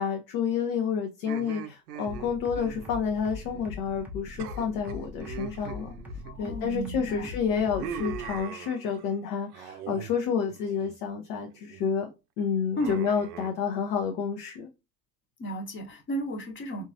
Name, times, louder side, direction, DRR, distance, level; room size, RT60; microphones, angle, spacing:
voice 1, 0.0-5.9 6.4-12.1 12.4-14.7, left 6 dB, 45° left, 0.7 m, -29 dB
sound 1, 1.2-3.7 3.9-4.1 4.4-6.7 7.1-9.1 9.5-10.1 10.5-11.0 11.4-11.8 12.8-13.5, right 9 dB, 65° right, 0.6 m, -41 dB
sound 2, 2.1-8.4, left 4 dB, 5° right, 0.5 m, -41 dB
voice 2, 6.2-7.3 12.8-12.9 15.4-16.8, equal, 25° left, 1.0 m, -33 dB
3.8 x 2.5 x 2.6 m
figure-of-eight pair, 70°, 49 cm